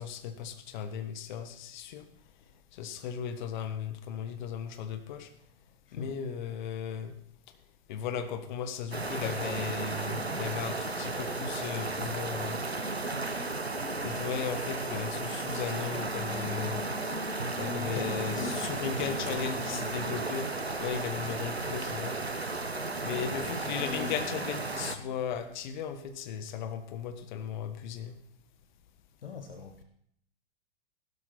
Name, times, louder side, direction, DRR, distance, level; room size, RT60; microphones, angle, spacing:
voice 1, 0.0-2.1 2.7-5.3 5.9-7.1 7.9-12.6 14.0-16.8 17.6-22.2 23.0-28.1, left 7 dB, 50° left, 9 dB, 1.7 m, -36 dB
voice 2, 5.9-6.2 8.9-9.9 17.8-20.2 23.1-24.3 24.8-24.9 29.2-29.8, left 6 dB, 65° left, 7 dB, 1.2 m, -41 dB
sound 1, 8.9-25.0, right 3 dB, 90° right, 1.1 m, -34 dB
Race car auto racing, 9.5-25.7, left 5 dB, 30° left, 1.6 m, -49 dB
15.5 x 12.5 x 4.3 m, 0.68 s
figure-of-eight pair, 100°, 31 cm